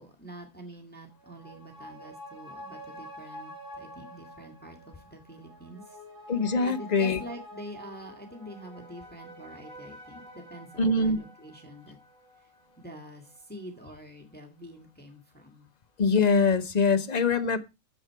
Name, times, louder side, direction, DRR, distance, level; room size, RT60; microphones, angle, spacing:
voice 1, 0.0-6.0 6.6-12.0 12.8-15.7, right 1 dB, 5° left, 1.8 m, -46 dB
sound 1, 1.1-14.0 14.3-14.4, equal, 40° right, 3.9 m, -48 dB
voice 2, 6.3-7.2 10.8-11.2 16.0-17.6, left 4 dB, 35° left, 0.9 m, -23 dB
10.5 x 7.4 x 4.6 m
omnidirectional pair, 1.4 m